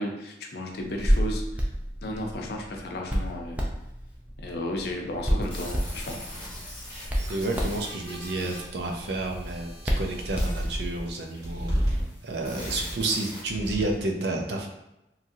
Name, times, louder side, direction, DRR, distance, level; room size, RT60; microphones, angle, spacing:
voice 1, 0.0-1.5 2.0-3.6 4.4-6.2, left 1 dB, 65° left, 1 dB, 0.5 m, -33 dB
Hands, 0.8-11.0, equal, 10° right, 0.3 m, -30 dB
sound 1, 5.4-13.4, equal, 10° left, 1.1 m, -43 dB
voice 2, 7.3-9.7 10.0-14.7, right 2 dB, 75° right, 2 dB, 0.5 m, -30 dB
sound 2, 9.2-9.7 10.1-12.0 12.5-13.1 13.4-14.1, equal, 25° right, 0.8 m, -31 dB
2.9 x 2.5 x 2.6 m, 0.93 s
head